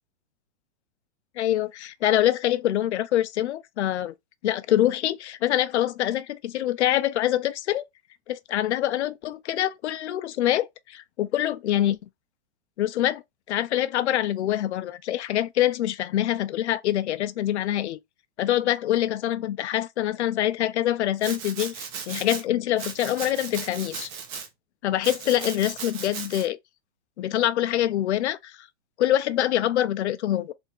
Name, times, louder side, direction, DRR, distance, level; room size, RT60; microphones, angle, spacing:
voice 1, 1.4-4.1 4.4-7.8 8.3-12.0 12.8-13.2 13.5-18.0 18.4-24.1 24.8-26.6 27.2-28.6 29.0-30.5, left 12 dB, 90° left, 0.6 m, -25 dB
Domestic sounds home sounds, 21.2-22.4 22.8-24.5 25.0-26.5, right 6 dB, 30° right, 0.8 m, -36 dB
3.5 x 2.4 x 4.4 m
supercardioid pair, 160°, 33 cm